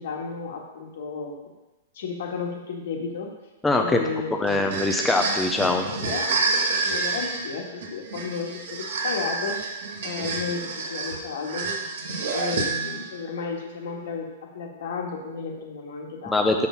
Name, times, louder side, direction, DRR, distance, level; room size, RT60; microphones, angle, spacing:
voice 1, 0.0-1.3 1.9-3.3 3.7-4.7 5.8-9.6 10.0-11.7 12.3-16.5, left 5 dB, 70° left, 1 dB, 1.5 m, -33 dB
voice 2, 3.6-4.0 4.3-5.9 16.3-16.7, left 2 dB, 5° left, 2 dB, 0.5 m, -22 dB
sound 1, 4.5-13.1, right 4 dB, 65° right, 1.6 m, -28 dB
6.2 x 5.4 x 5.6 m, 1.1 s
hypercardioid pair, 155°, 0 cm